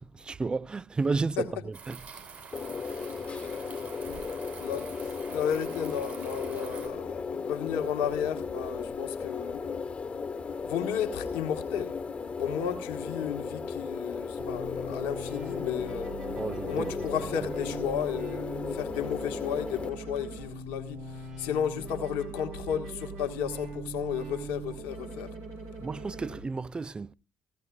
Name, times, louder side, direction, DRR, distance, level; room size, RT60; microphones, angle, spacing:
voice 1, 0.1-2.0 16.4-16.9 17.4-17.5 25.8-27.1, right 4 dB, 25° right, 0.5 m, -32 dB
sound 1, 1.7-6.9, right 5 dB, 50° right, 7.9 m, -46 dB
sound 2, 2.5-19.9, left 5 dB, 35° left, 1.3 m, -36 dB
voice 2, 3.4-3.8 4.6-9.9 10.6-12.0 12.4-16.1 16.6-25.3, left 8 dB, 70° left, 1.4 m, -33 dB
sound 3, 14.4-26.4, right 3 dB, 75° right, 5.9 m, -41 dB
16.0 x 15.0 x 2.4 m
hypercardioid pair, 50°, 3 cm